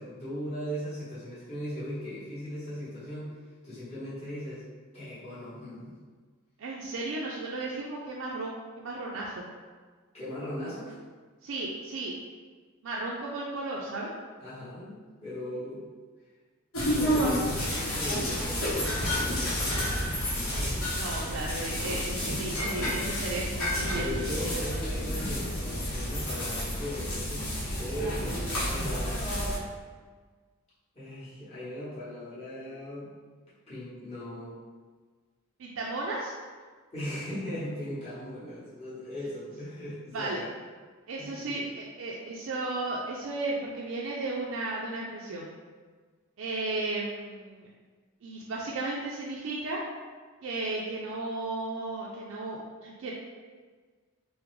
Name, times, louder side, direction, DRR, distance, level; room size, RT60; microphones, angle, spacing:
voice 1, 0.0-3.4 3.6-4.6 4.9-6.0 10.1-11.0 14.4-15.8 16.8-20.5 22.7-23.0 23.7-29.2 30.9-33.1 33.7-34.6 36.9-40.5 41.2-41.5, equal, 30° left, -11 dB, 0.9 m, -38 dB
voice 2, 6.6-9.4 11.4-12.1 12.8-14.1 15.5-15.6 20.9-24.3 24.7-24.8 35.6-36.3 40.1-40.4 41.1-45.5 46.4-47.7 48.2-49.8 50.4-53.1, right 2 dB, 65° right, -3 dB, 0.4 m, -34 dB
sound 1, 16.7-29.6, equal, 75° left, 0.9 m, -30 dB
3.6 x 2.0 x 3.0 m, 1.4 s
head